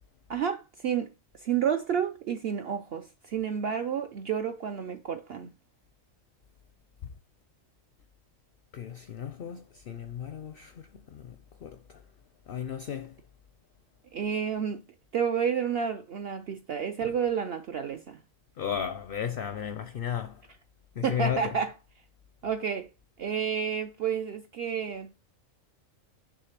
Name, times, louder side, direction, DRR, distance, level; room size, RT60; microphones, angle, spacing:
voice 1, 0.3-1.1 1.4-5.5 14.1-14.8 15.1-18.2 21.0-21.7 22.4-22.9 23.2-25.1, right 7 dB, 55° right, 0.7 m, -30 dB
voice 2, 8.7-12.0 12.5-13.2 18.6-20.4 20.9-21.6, left 8 dB, 60° left, 0.6 m, -35 dB
6.4 x 3.3 x 5.9 m
omnidirectional pair, 1.4 m